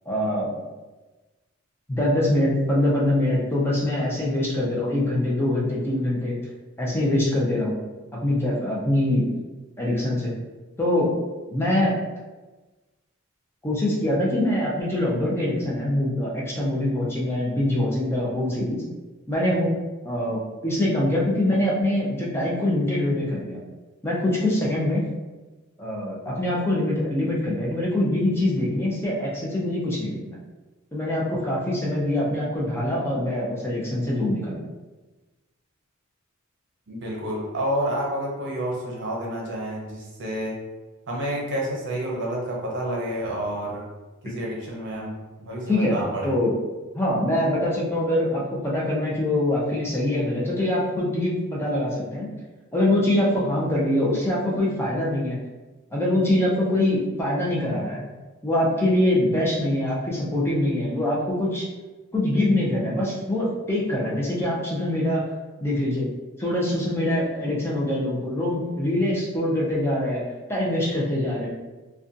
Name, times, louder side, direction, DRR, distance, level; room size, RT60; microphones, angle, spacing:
voice 1, 0.1-0.6 1.9-6.4 6.8-7.8 8.2-9.3 9.8-10.3 10.8-11.1 11.5-12.0 13.6-18.8 19.3-19.7 20.0-23.6 24.0-25.0 25.8-30.4 30.9-34.7 45.7-46.5 46.9-52.3 52.7-55.4 55.9-58.0 58.4-61.6 62.1-65.2 65.6-66.1 66.4-70.2 70.5-71.5, left 1 dB, 10° left, -6 dB, 0.5 m, -24 dB
voice 2, 36.9-40.5 41.1-43.8 44.2-45.1 45.4-46.3, right 1 dB, 60° right, -3 dB, 0.7 m, -29 dB
2.6 x 2.2 x 2.5 m, 1.2 s
head